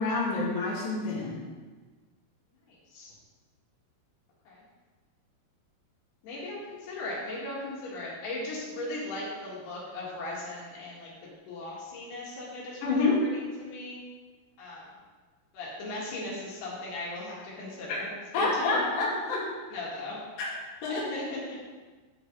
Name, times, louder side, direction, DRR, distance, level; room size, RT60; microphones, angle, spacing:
voice 1, 0.0-1.4 12.8-13.2 18.3-19.5 20.4-20.5 20.8-21.1, left 3 dB, 65° left, -5 dB, 3.3 m, -27 dB
voice 2, 2.7-3.1 4.5-4.6 6.2-11.1 11.5-14.0 14.6-14.9 15.5-18.7 19.7-20.2 20.9-21.6, left 2 dB, 85° left, -6 dB, 3.8 m, -38 dB
10.5 x 6.0 x 3.8 m, 1.4 s
omnidirectional pair, 4.5 m